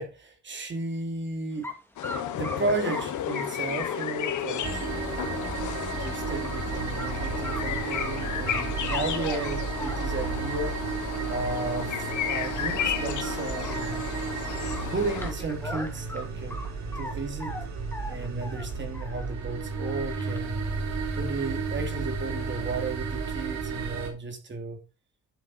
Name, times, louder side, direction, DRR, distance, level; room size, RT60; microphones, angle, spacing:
voice 1, 0.0-1.7 2.3-5.4 6.0-10.7 11.3-14.1 14.9-16.6 16.9-17.5 18.1-20.6 21.2-24.8, right 3 dB, 40° right, 2.9 m, -34 dB
sound 1, 1.6-1.8 2.0-5.8 6.2-6.6 7.0-7.1 7.4-8.1 8.5-10.4 11.0-11.1 11.5-11.6 11.9-12.0 12.3-12.5 12.8-14.3 14.7-17.1 17.4-19.3 19.7-20.4, left 1 dB, 10° left, 2.5 m, -40 dB
sound 2, 2.0-15.3, left 10 dB, 75° left, 1.5 m, -33 dB
sound 3, 4.6-24.1, right 5 dB, 65° right, 3.5 m, -33 dB
11.5 x 6.5 x 4.2 m
cardioid pair, 90°, 30 cm